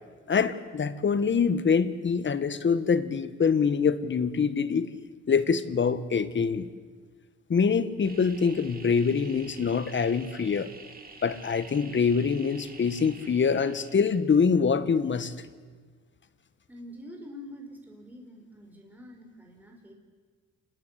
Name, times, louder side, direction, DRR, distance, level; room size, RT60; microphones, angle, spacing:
voice 1, 0.3-4.9 5.3-6.7 7.5-10.7 11.2-15.5, left 6 dB, 40° left, 13 dB, 1.5 m, -25 dB
sound 1, 8.0-14.2, right 4 dB, 30° right, 2.8 m, -48 dB
voice 2, 16.7-19.9, left 1 dB, 5° right, 1 dB, 4.9 m, -46 dB
27.5 x 20.0 x 8.3 m, 1.5 s
cardioid pair, 90°, 30 cm